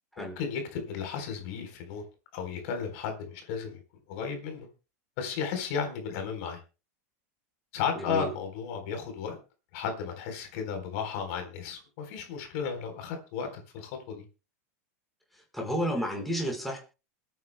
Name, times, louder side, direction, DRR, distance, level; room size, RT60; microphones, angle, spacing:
voice 1, 0.2-2.0 2.3-3.8 4.1-4.7 5.2-6.6 7.7-9.4 9.7-14.2, left 6 dB, 60° left, 5 dB, 4.0 m, -34 dB
voice 2, 7.9-8.3 15.5-16.8, equal, ahead, 0 dB, 4.8 m, -31 dB
27.5 x 9.4 x 2.2 m, 0.31 s
supercardioid pair, 155°, 9 cm